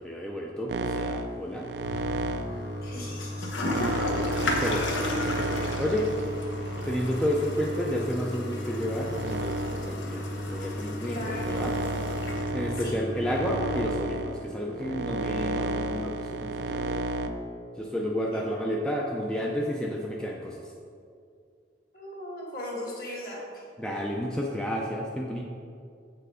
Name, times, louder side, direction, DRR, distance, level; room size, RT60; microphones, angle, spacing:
voice 1, 0.0-1.7 4.6-6.1 6.9-11.7 12.5-17.1 17.8-20.6 23.8-25.4, equal, 5° left, -2 dB, 0.4 m, -31 dB
sound 1, 0.7-8.1 8.7-17.3, right 2 dB, 60° right, 0.4 m, -33 dB
Toilet flush, 1.8-13.8, left 1 dB, 90° left, 0.9 m, -33 dB
voice 2, 2.8-4.0 11.0-12.2 12.7-13.0 18.3-18.4 21.9-23.6, left 1 dB, 50° left, -3 dB, 1.8 m, -39 dB
7.3 x 4.6 x 4.9 m, 2.4 s
head